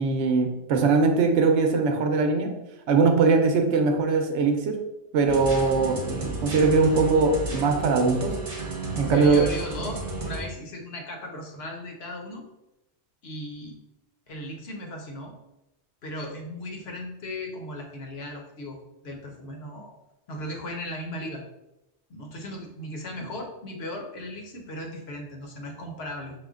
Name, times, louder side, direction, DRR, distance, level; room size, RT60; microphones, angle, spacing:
voice 1, 0.0-2.6 2.9-4.8 5.1-8.4 8.9-9.5, right 4 dB, 85° right, 4 dB, 0.9 m, -21 dB
sound 1, 5.3-10.4, right 2 dB, 45° right, 1.0 m, -33 dB
voice 2, 9.1-12.5 13.2-13.8 14.3-15.3 16.0-18.8 19.0-19.9 20.3-21.4 22.1-26.3, left 1 dB, 65° left, 2 dB, 1.0 m, -37 dB
4.9 x 2.2 x 3.6 m, 0.91 s
omnidirectional pair, 1.2 m